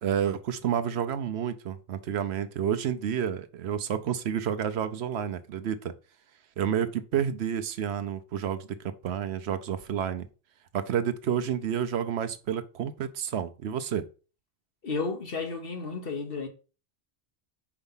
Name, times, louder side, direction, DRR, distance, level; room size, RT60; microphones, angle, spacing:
voice 1, 0.0-5.9 6.6-10.3 10.7-14.1, right 8 dB, 80° right, 0.9 m, -30 dB
voice 2, 14.8-16.5, left 4 dB, 60° left, 1.4 m, -32 dB
4.9 x 4.5 x 5.4 m
omnidirectional pair, 1.1 m